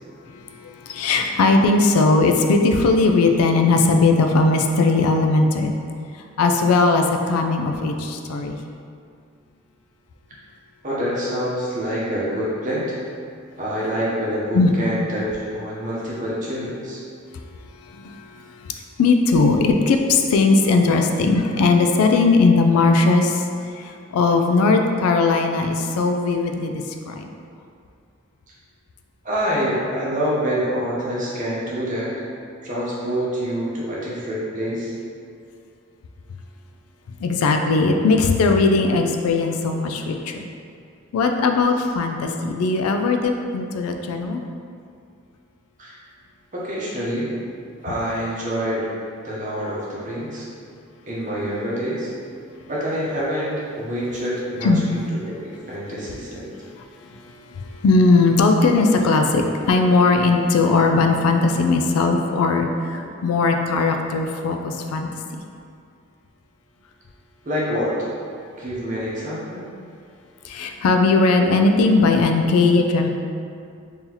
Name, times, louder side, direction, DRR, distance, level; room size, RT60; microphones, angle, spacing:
voice 1, 0.3-5.7 6.4-8.6 14.5-14.7 17.9-18.7 19.0-23.5 23.8-27.3 37.2-40.5 41.1-44.4 54.6-54.9 56.8-65.4 70.4-73.1, left 3 dB, 85° left, 5 dB, 0.3 m, -19 dB
voice 2, 10.8-13.0 13.6-15.3 15.5-17.0 29.2-32.1 32.6-34.9 45.8-46.0 46.5-47.3 47.8-48.9 49.2-50.5 51.0-52.1 52.7-56.5 67.4-67.9 68.6-69.6, equal, 35° right, -7 dB, 0.7 m, -26 dB
3.8 x 2.8 x 2.9 m, 2.4 s
head